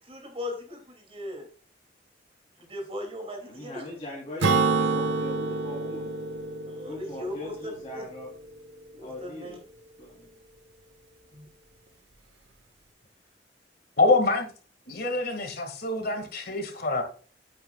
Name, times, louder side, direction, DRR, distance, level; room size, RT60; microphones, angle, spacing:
voice 1, 0.0-1.5 2.6-3.9 6.6-8.1 8.9-9.6 11.3-11.5, left 1 dB, 35° right, 3 dB, 2.6 m, -38 dB
voice 2, 3.5-6.1 6.8-8.3 9.0-9.6 10.0-10.4, left 1 dB, 30° left, -5 dB, 3.2 m, -41 dB
Acoustic guitar / Strum, 4.4-8.0, right 4 dB, 90° right, 1.0 m, -27 dB
voice 3, 14.0-14.5 14.9-17.0, left 3 dB, 60° left, 5 dB, 2.0 m, -25 dB
9.7 x 9.1 x 2.3 m, 0.40 s
head